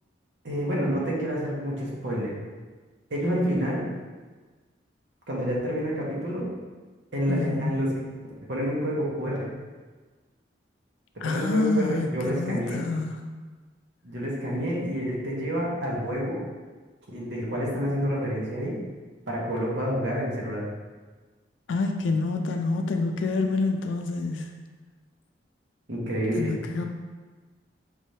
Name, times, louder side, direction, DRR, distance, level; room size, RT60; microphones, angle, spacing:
voice 1, 0.4-2.3 3.1-3.9 5.3-6.5 7.1-7.9 8.5-9.5 11.2-12.8 14.0-16.4 17.1-18.8 19.3-20.7 25.9-26.6, equal, 75° right, -4 dB, 1.2 m, -28 dB
voice 2, 7.3-7.8 11.2-13.2 21.7-24.4 26.4-26.8, left 3 dB, 85° left, 4 dB, 0.4 m, -27 dB
5.3 x 3.3 x 2.7 m, 1.3 s
head